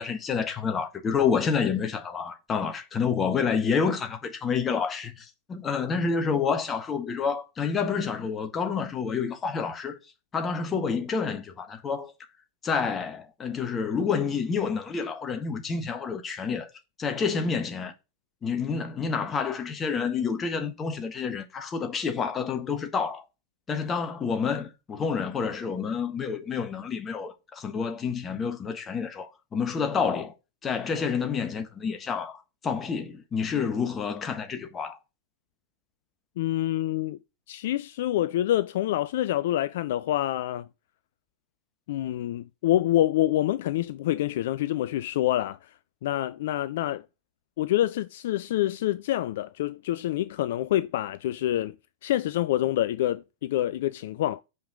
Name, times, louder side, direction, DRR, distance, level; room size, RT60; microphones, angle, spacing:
voice 1, 0.0-10.0 10.3-12.1 12.6-16.7 17.0-17.9 18.4-23.3 23.7-30.3 30.6-35.0, left 6 dB, 20° left, 1.2 m, -28 dB
voice 2, 36.4-37.2 37.5-40.7 41.9-45.7 46.0-47.0 47.6-51.7 52.0-54.4, left 13 dB, 55° left, 0.3 m, -26 dB
5.4 x 5.3 x 5.1 m
figure-of-eight pair, 90°, 0 cm